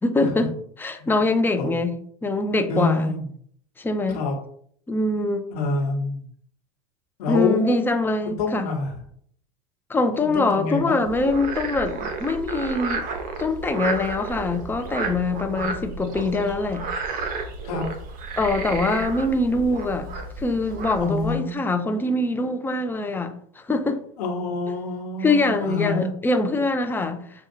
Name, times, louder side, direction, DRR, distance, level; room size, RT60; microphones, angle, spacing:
voice 1, 0.0-0.5 0.8-1.9 2.2-3.1 3.8-4.2 4.9-5.5 7.3-8.6 9.9-13.1 13.4-16.8 18.4-20.1 20.4-24.0 25.2-27.2, left 2 dB, 10° left, 0.5 m, -23 dB
voice 2, 2.7-3.3 4.1-4.3 5.5-6.2 7.2-7.8 8.2-9.0 10.2-11.0 17.6-17.8 21.0-21.6 24.2-26.1, left 3 dB, 70° left, 1.2 m, -27 dB
Frog, 11.1-21.3, right 4 dB, 45° right, 0.8 m, -32 dB
6.3 x 2.3 x 2.7 m
hypercardioid pair, 90°, 21 cm